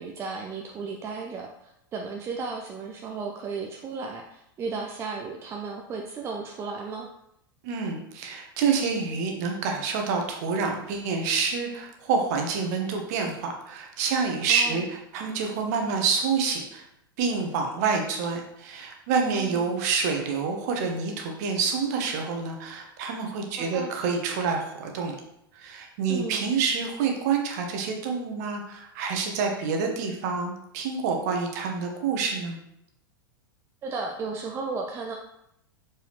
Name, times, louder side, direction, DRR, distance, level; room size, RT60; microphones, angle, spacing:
voice 1, 0.0-7.1 14.5-14.9 19.3-19.7 23.6-23.9 26.1-26.4 33.8-35.2, right 4 dB, 20° right, 1 dB, 0.6 m, -34 dB
voice 2, 7.6-16.8 17.2-25.2 25.5-32.6, right 5 dB, 45° right, 2 dB, 1.2 m, -27 dB
6.8 x 4.6 x 3.1 m, 0.79 s
figure-of-eight pair, 95°, 12 cm